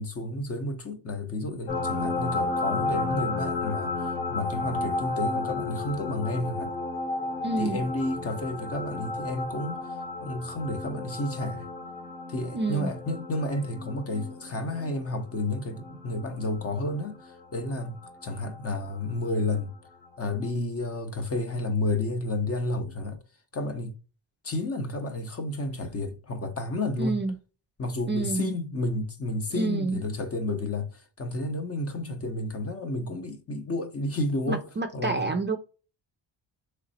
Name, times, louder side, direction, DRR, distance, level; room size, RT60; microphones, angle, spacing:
voice 1, 0.0-6.7 7.6-9.8 10.2-11.7 12.3-19.7 20.2-23.2 23.5-24.0 24.4-27.2 27.8-34.6 34.9-35.4, left 2 dB, 30° left, 0.8 m, -31 dB
sound 1, 1.7-18.9 20.4-20.5, left 3 dB, 70° left, 1.9 m, -33 dB
voice 2, 7.4-7.9 12.5-12.9 27.0-27.3 28.1-28.5 29.5-30.0 34.5-35.6, right 3 dB, 25° right, 0.4 m, -28 dB
3.9 x 3.1 x 4.1 m
wide cardioid pair, 150°, 44 cm